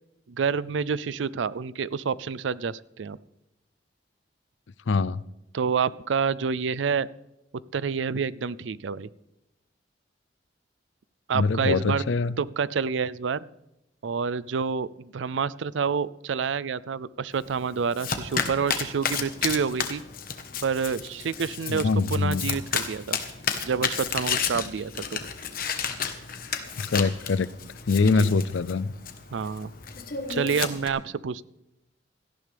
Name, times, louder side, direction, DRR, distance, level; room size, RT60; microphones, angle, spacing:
voice 1, 0.3-3.2 5.5-7.1 7.7-9.1 11.3-12.0 12.4-13.4 14.0-20.0 20.6-23.2 23.6-25.2 28.0-28.3 29.3-29.7 30.3-31.4, right 6 dB, 80° right, 19 dB, 0.5 m, -28 dB
voice 2, 4.9-5.2 11.3-12.4 21.7-22.5 26.8-27.5 27.9-28.9, left 4 dB, 80° left, 19 dB, 0.5 m, -24 dB
Domestic sounds home sounds, 17.3-30.9, left 6 dB, 50° left, 1.3 m, -32 dB
17.5 x 14.0 x 3.5 m, 0.89 s
head